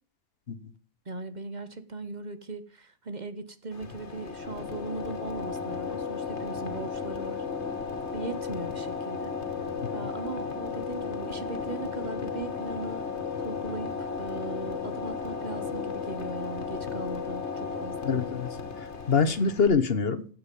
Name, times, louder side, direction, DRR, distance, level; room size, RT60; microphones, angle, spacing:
voice 1, 1.1-7.5 8.1-9.4 9.9-13.1 13.4-18.2, right 3 dB, 40° right, 11 dB, 1.2 m, -39 dB
sound 1, 3.7-19.7, left 5 dB, 80° left, 2.2 m, -34 dB
voice 2, 18.0-18.6 19.1-20.3, left 5 dB, 60° left, 11 dB, 1.4 m, -25 dB
15.5 x 8.2 x 5.3 m, 0.43 s
omnidirectional pair, 1.1 m